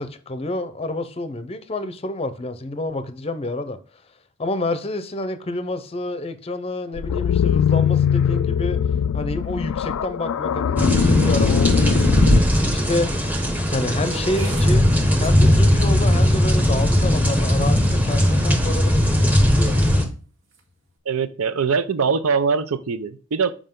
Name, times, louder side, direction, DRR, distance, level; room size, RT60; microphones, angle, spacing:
voice 1, 0.0-3.8 4.4-8.8 9.1-12.2 12.6-13.1 13.7-14.8 15.2-19.8, left 2 dB, 30° left, 0.6 m, -28 dB
sound 1, 7.0-12.4, left 8 dB, 80° left, 0.3 m, -21 dB
sound 2, 10.8-20.0, equal, 10° right, 0.9 m, -18 dB
sound 3, 12.1-12.2 12.9-19.1 19.7-20.1 20.4-20.7, right 1 dB, 70° right, 2.2 m, -41 dB
voice 2, 21.1-23.5, right 5 dB, 85° right, 0.6 m, -22 dB
7.7 x 4.9 x 3.7 m
head